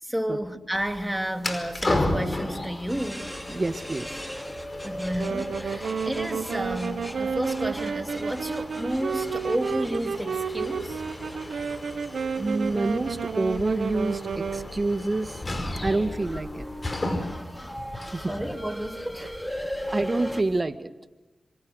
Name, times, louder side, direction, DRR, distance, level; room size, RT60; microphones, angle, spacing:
voice 1, 0.0-3.4 4.8-11.0 18.2-19.7, right 1 dB, 10° right, 2.9 m, -31 dB
sound 1, 0.7-20.6, left 1 dB, 35° left, 4.9 m, -35 dB
sound 2, 2.9-20.4, equal, 10° left, 3.5 m, -40 dB
voice 2, 3.5-4.1 12.4-15.4 15.8-16.6 18.1-18.2 19.9-20.9, right 2 dB, 40° right, 1.9 m, -27 dB
Wind instrument woodwind instrument, 5.2-14.7, right 6 dB, 75° right, 1.3 m, -31 dB
26.5 x 26.5 x 6.6 m
cardioid pair, 50°, 0 cm